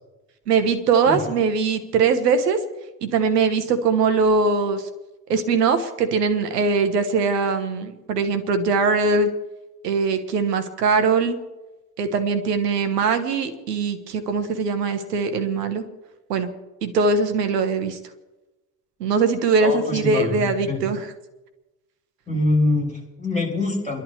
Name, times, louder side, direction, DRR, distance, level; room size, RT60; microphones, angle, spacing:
voice 1, 0.5-2.6 3.0-4.8 5.3-9.3 9.8-11.4 12.0-15.8 16.3-16.5 16.8-18.0 19.0-21.0, right 4 dB, 75° right, 8 dB, 1.3 m, -21 dB
voice 2, 19.6-20.8 22.3-24.0, left 2 dB, 15° left, -4 dB, 7.1 m, -24 dB
30.0 x 11.5 x 3.3 m, 1.1 s
figure-of-eight pair, 50°, 48 cm